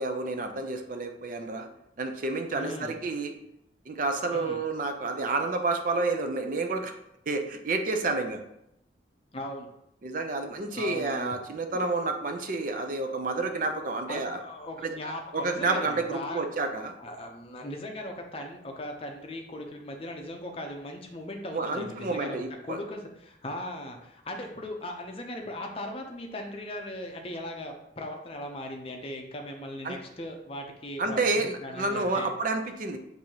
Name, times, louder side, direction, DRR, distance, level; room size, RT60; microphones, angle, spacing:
voice 1, 0.0-1.7 2.0-3.3 3.9-6.9 7.3-8.4 10.0-14.4 14.8-15.0 15.3-17.0 21.5-22.8 29.8-30.0 31.0-33.0, right 3 dB, 45° right, 5 dB, 0.5 m, -29 dB
voice 2, 2.6-3.0 4.3-4.6 9.3-9.7 10.7-11.3 14.1-16.4 17.0-22.4 22.6-32.3, left 1 dB, 30° left, 3 dB, 0.6 m, -38 dB
6.2 x 2.7 x 2.9 m, 0.79 s
head